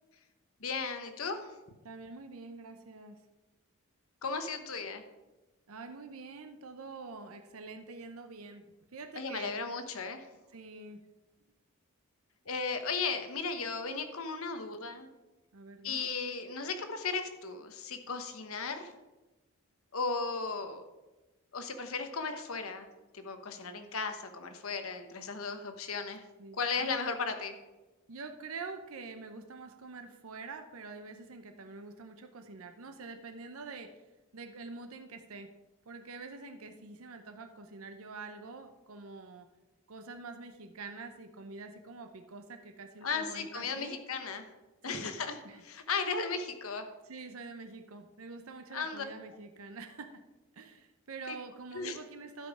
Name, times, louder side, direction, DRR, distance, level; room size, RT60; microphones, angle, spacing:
voice 1, 0.6-1.5 4.2-5.0 9.1-10.3 12.5-15.1 15.8-18.9 19.9-20.8 21.5-22.9 23.1-26.2 26.5-27.6 43.0-44.5 44.8-46.9 48.7-49.0 51.3-51.4 51.7-52.0, left 4 dB, 75° left, 8 dB, 1.1 m, -36 dB
voice 2, 1.8-3.2 5.7-8.6 8.9-9.5 10.5-11.0 15.5-16.1 26.4-27.0 28.1-34.0 34.3-35.5 35.9-39.5 39.9-44.0 44.8-45.1 45.4-45.6 47.1-50.2 50.5-52.5, right 4 dB, 75° right, 7 dB, 0.7 m, -46 dB
12.0 x 5.4 x 4.8 m, 1.1 s
head